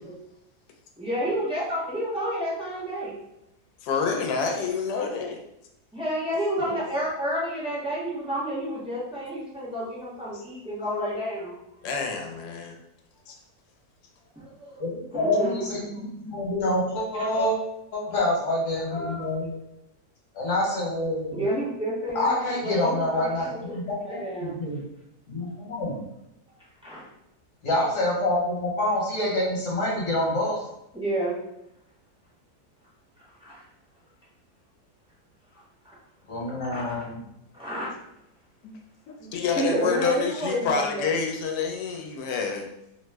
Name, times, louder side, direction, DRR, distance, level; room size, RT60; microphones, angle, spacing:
voice 1, 1.0-3.2 5.9-11.6 14.3-14.8 15.1-15.6 17.1-17.5 18.8-19.3 21.3-23.8 24.0-24.6 26.8-27.1 30.9-31.4 33.4-33.6 35.8-36.0 36.4-37.1 37.5-37.9 39.2-41.1, right 1 dB, 5° right, -8 dB, 0.5 m, -30 dB
voice 2, 3.8-5.4 6.6-6.8 11.8-12.8 13.3-13.4 38.6-38.8 39.1-42.6, left 5 dB, 90° left, 3 dB, 1.2 m, -28 dB
voice 3, 14.8-17.6 17.9-19.5 20.3-21.4 22.1-24.8 25.3-26.0 27.6-30.6 36.3-37.2, left 1 dB, 55° left, -4 dB, 1.3 m, -27 dB
2.9 x 2.0 x 3.3 m, 0.83 s
omnidirectional pair, 1.7 m